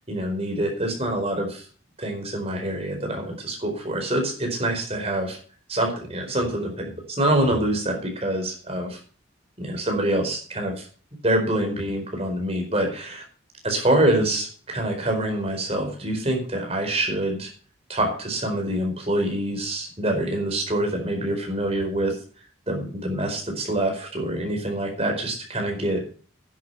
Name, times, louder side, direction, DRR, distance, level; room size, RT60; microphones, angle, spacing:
voice 1, 0.1-1.7 2.0-5.4 5.7-9.0 9.6-10.9 11.2-13.2 13.6-17.5 17.9-22.2 22.7-26.0, right 1 dB, 30° right, 2 dB, 4.6 m, -25 dB
10.5 x 9.3 x 6.9 m, 0.42 s
head